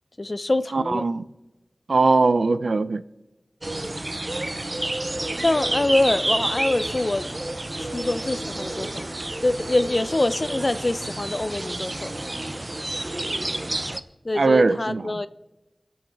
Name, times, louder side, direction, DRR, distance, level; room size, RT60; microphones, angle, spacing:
voice 1, 0.2-1.1 5.4-7.3 7.8-9.1 9.4-12.1 14.2-15.3, left 2 dB, 45° left, 0.5 m, -24 dB
voice 2, 0.7-1.3 1.9-3.0 14.3-15.2, right 3 dB, 90° right, 0.4 m, -20 dB
sound 1, 3.6-14.0, right 1 dB, 40° right, 0.6 m, -30 dB
20.0 x 7.2 x 4.6 m
wide cardioid pair, 50°, 0 cm